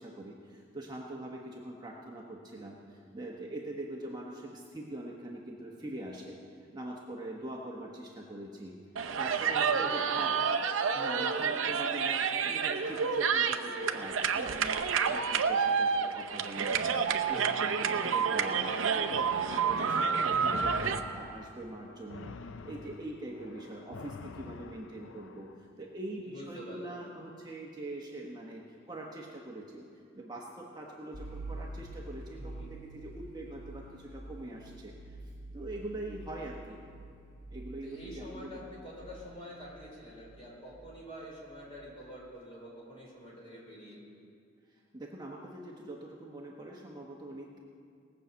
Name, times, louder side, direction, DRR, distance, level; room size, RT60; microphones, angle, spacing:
voice 1, 0.0-10.3 10.9-34.9 35.5-36.8 37.5-38.7 44.9-47.6, right 1 dB, 20° right, -2 dB, 1.1 m, -43 dB
sound 1, 9.0-21.0, right 6 dB, 75° right, 0.7 m, -29 dB
voice 2, 9.5-10.5 17.8-18.2 26.2-27.0 32.3-32.7 37.8-44.1, equal, 30° left, -4 dB, 4.1 m, -47 dB
sound 2, 19.1-25.6, left 4 dB, 70° left, 0.5 m, -47 dB
sound 3, 31.1-42.1, right 2 dB, 40° right, 1.2 m, -47 dB
19.0 x 6.4 x 8.1 m, 2.3 s
head